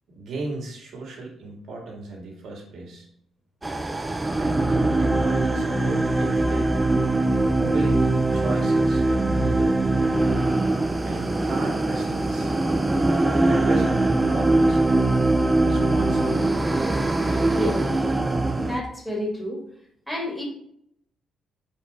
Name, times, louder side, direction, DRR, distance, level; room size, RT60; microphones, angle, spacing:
voice 1, 0.1-3.1 4.4-6.8 7.5-9.8 11.0-12.5 13.4-15.2 15.5-16.7 17.3-17.6, right 3 dB, 65° right, -1 dB, 2.2 m, -35 dB
sound 1, 3.6-18.8, right 2 dB, 15° right, 0.6 m, -22 dB
voice 2, 17.5-17.9 18.5-19.6 20.1-20.4, left 1 dB, 5° left, -2 dB, 2.2 m, -30 dB
5.2 x 4.6 x 4.3 m, 0.72 s
cardioid pair, 90°, 0 cm